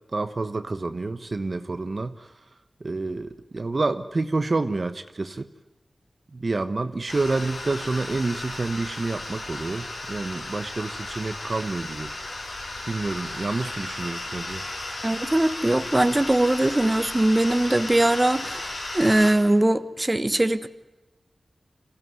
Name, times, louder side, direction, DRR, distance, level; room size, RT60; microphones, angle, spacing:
voice 1, 0.1-2.3 2.8-5.5 6.3-12.1 12.9-14.6, right 3 dB, 50° right, 10 dB, 1.1 m, -28 dB
sound 1, 7.1-19.3, left 2 dB, 80° left, 7.6 m, -35 dB
voice 2, 15.0-20.7, right 1 dB, 25° right, 11 dB, 1.3 m, -21 dB
25.5 x 16.5 x 9.4 m, 1.1 s
wide cardioid pair, 70°, 0 cm